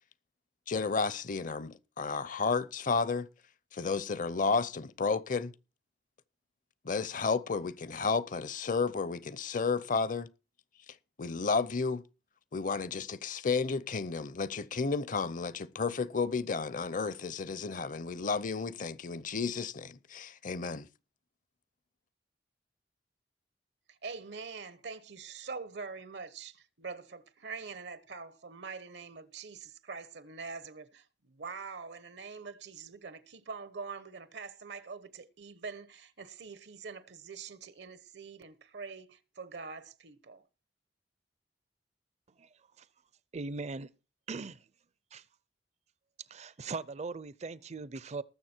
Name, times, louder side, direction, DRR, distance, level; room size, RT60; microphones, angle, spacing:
voice 1, 0.7-3.3 3.7-5.5 6.8-10.3 11.2-12.0 12.5-20.9, left 4 dB, 50° left, 0.6 m, -32 dB
voice 2, 23.9-40.4, right 5 dB, 75° right, 1.1 m, -44 dB
voice 3, 43.3-43.9 44.3-44.6 45.1-45.2 46.3-48.2, right 4 dB, 40° right, 0.5 m, -39 dB
19.0 x 7.1 x 4.4 m
head